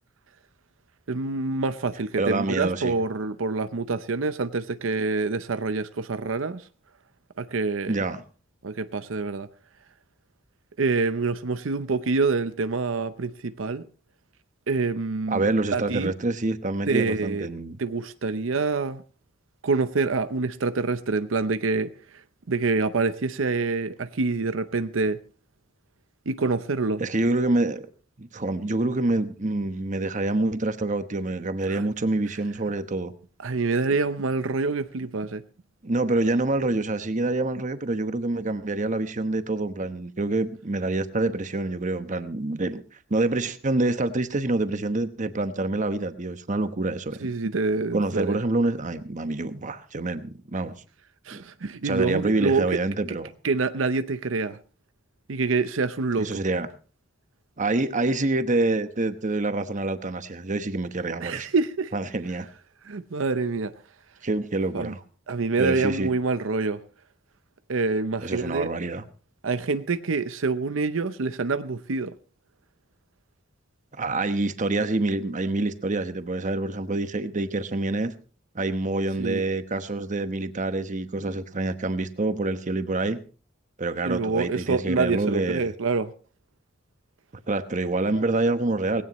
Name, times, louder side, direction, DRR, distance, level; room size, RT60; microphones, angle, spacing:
voice 1, 1.1-6.6 7.4-8.0 8.6-9.5 10.8-13.8 14.7-15.4 15.7-16.1 16.9-17.5 17.8-19.0 19.6-21.9 22.5-25.2 26.3-27.0 31.7-31.8 33.4-35.4 47.2-48.4 51.3-52.7 53.4-54.6 55.3-56.4 61.2-61.9 62.8-63.7 64.7-64.9 65.3-66.8 67.7-68.7 69.4-72.1 79.2-79.4 84.1-86.1, right 3 dB, 80° right, 0.7 m, -26 dB
voice 2, 2.2-3.0 7.9-8.2 15.3-17.8 27.0-27.9 28.2-33.1 35.8-42.8 43.1-47.2 47.9-50.7 51.3-51.4 51.8-53.3 56.2-56.7 57.6-61.5 61.9-62.5 64.2-65.0 65.6-66.1 68.2-69.1 74.0-78.1 78.5-83.2 83.8-85.7 87.5-89.0, right 2 dB, 40° right, 1.1 m, -26 dB
19.0 x 17.0 x 3.1 m
head